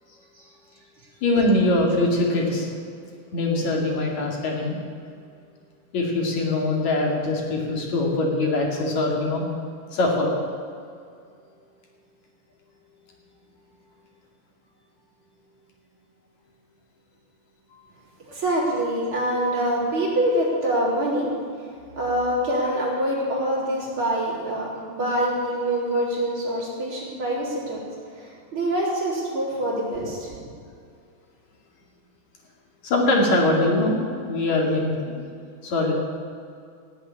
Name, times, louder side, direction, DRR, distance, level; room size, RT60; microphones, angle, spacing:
voice 1, 1.2-2.7 3.3-4.7 5.9-9.4 9.9-10.3 32.8-34.0 34.3-34.9 35.6-35.9, left 2 dB, 65° left, 0 dB, 3.8 m, -22 dB
voice 2, 18.2-21.3 22.0-27.8 28.2-30.3, right 1 dB, 40° right, -5 dB, 4.8 m, -25 dB
17.0 x 7.7 x 9.9 m, 2.3 s
omnidirectional pair, 3.6 m